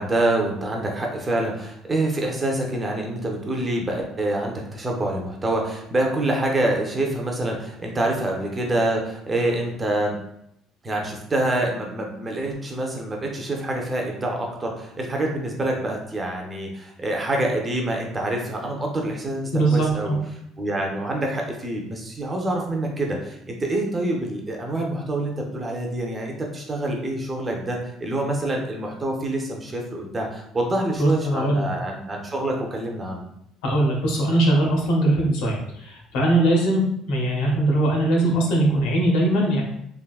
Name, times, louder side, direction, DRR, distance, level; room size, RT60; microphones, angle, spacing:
voice 1, 0.0-10.2 10.8-20.1 20.6-33.3, right 1 dB, 15° right, 0 dB, 0.4 m, -26 dB
voice 2, 19.5-20.2 31.0-31.7 33.6-36.8 37.1-39.6, right 1 dB, 80° left, -2 dB, 0.9 m, -21 dB
3.4 x 2.5 x 2.3 m, 0.75 s
cardioid pair, 175°, 0 cm